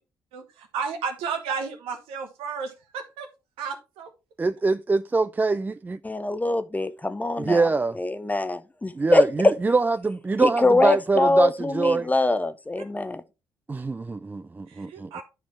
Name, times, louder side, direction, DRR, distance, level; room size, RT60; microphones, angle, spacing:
voice 1, 0.3-3.3 3.6-4.1 14.7-15.2, right 6 dB, 65° right, 1.2 m, -33 dB
voice 2, 4.4-6.0 7.4-8.0 8.9-12.1 13.7-15.1, right 3 dB, 15° right, 0.3 m, -24 dB
voice 3, 6.0-7.7 8.0-9.2 10.4-13.2, left 2 dB, 15° left, 0.7 m, -23 dB
11.5 x 4.3 x 3.2 m
figure-of-eight pair, 45°, 10 cm